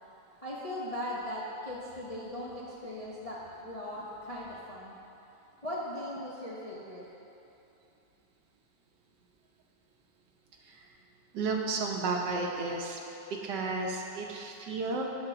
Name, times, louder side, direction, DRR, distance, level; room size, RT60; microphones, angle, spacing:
voice 1, 0.4-4.9 5.6-7.0, left 1 dB, 35° left, -6 dB, 0.6 m, -39 dB
voice 2, 11.3-13.0 13.3-15.1, right 3 dB, 75° right, 1 dB, 1.4 m, -32 dB
10.5 x 3.8 x 5.9 m, 2.9 s
omnidirectional pair, 1.9 m